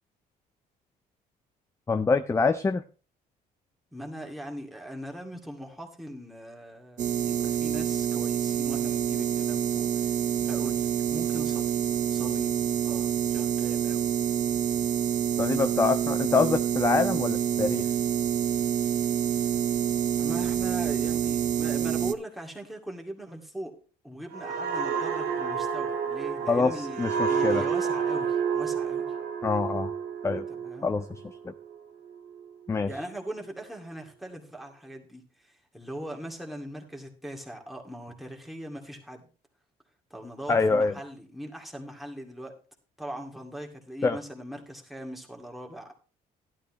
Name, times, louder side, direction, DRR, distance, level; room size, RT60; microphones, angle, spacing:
voice 1, 1.9-2.8 15.4-17.9 26.5-27.6 29.4-29.9 30.2-30.4 30.8-31.0 31.4-31.5 32.7-32.9 40.5-40.9 44.0-44.2, left 4 dB, 15° left, 10 dB, 0.5 m, -25 dB
voice 2, 3.9-14.1 19.3-19.5 20.2-23.7 24.0-29.1 30.5-30.9 32.9-39.3 40.1-42.6 43.0-45.9, equal, ahead, 0 dB, 2.2 m, -40 dB
sound 1, 7.0-22.1, right 9 dB, 45° right, 0.7 m, -27 dB
sound 2, 24.3-31.8 32.2-32.4, right 6 dB, 90° right, 2.0 m, -30 dB
12.5 x 11.5 x 3.1 m, 0.36 s
cardioid pair, 110°, 17 cm